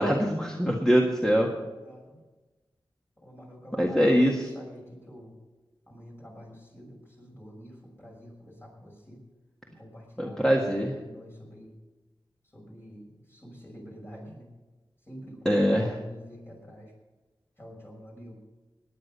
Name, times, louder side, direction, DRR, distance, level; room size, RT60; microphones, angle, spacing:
voice 1, 0.0-1.5 3.8-4.5 10.2-10.9 15.5-15.9, equal, 5° left, -1 dB, 1.8 m, -23 dB
voice 2, 1.5-2.2 3.2-5.4 5.9-9.2 9.7-10.6 11.0-11.8 12.5-14.5 15.1-16.9 17.6-18.4, equal, 25° left, -1 dB, 6.0 m, -47 dB
18.0 x 10.0 x 5.5 m, 1.2 s
wide cardioid pair, 75°, 9 cm